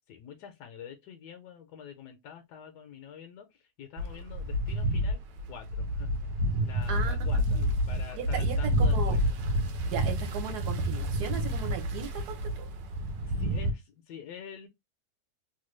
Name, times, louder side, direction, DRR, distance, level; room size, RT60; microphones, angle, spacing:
voice 1, 0.1-5.2 5.5-6.1 6.6-9.2 13.3-14.7, left 8 dB, 75° left, 1.2 m, -46 dB
sound 1, 4.0-13.7, equal, 85° right, 1.3 m, -29 dB
voice 2, 6.9-7.7 8.1-9.2 9.8-12.7, right 7 dB, 70° right, 1.4 m, -37 dB
3.2 x 2.2 x 3.1 m
omnidirectional pair, 1.8 m